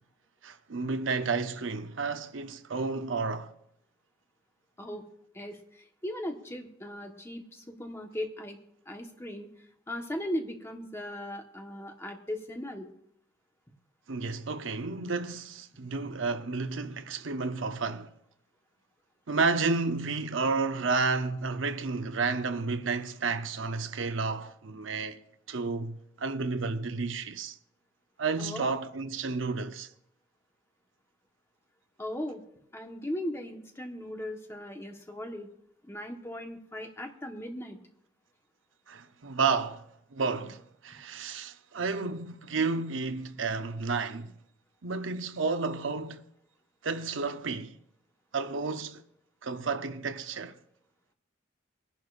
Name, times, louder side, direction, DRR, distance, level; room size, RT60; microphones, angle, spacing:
voice 1, 0.4-3.5 14.1-18.1 19.3-25.2 25.5-27.6 28.2-29.9 38.9-39.9 40.1-44.3 44.8-46.2 46.8-47.7 48.3-49.0 49.4-50.6, right 4 dB, 80° right, 0.8 m, -31 dB
voice 2, 5.3-8.6 8.9-9.5 9.9-12.9 28.4-28.7 32.0-32.4 32.7-35.5 35.9-37.8, left 1 dB, 15° left, 1.3 m, -38 dB
22.5 x 11.0 x 2.5 m
head